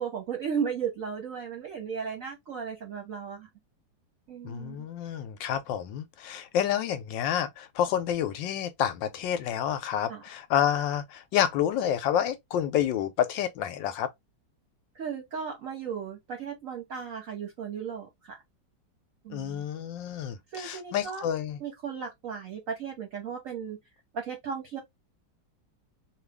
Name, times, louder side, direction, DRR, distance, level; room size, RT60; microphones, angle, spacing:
voice 1, 0.0-3.5 4.3-4.9 10.1-10.2 14.9-18.4 19.2-19.6 20.5-21.2 21.6-23.8 24.1-24.8, right 7 dB, 60° right, 0.9 m, -35 dB
voice 2, 4.4-14.1 19.3-21.6, left 10 dB, 75° left, 1.3 m, -29 dB
3.1 x 2.4 x 3.3 m
omnidirectional pair, 2.1 m